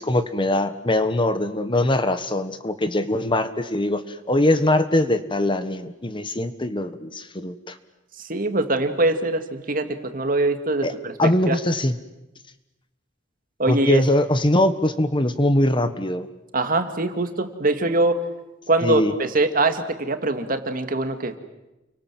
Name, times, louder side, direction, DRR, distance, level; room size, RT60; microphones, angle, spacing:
voice 1, 0.0-7.8 10.8-10.9 11.2-11.9 13.7-16.3 18.8-19.1, left 1 dB, 25° left, 11 dB, 1.4 m, -22 dB
voice 2, 8.2-11.1 11.5-11.6 13.6-14.0 16.5-18.2 18.7-21.3, right 2 dB, 50° right, 7 dB, 2.3 m, -23 dB
29.5 x 24.0 x 7.7 m, 1.0 s
head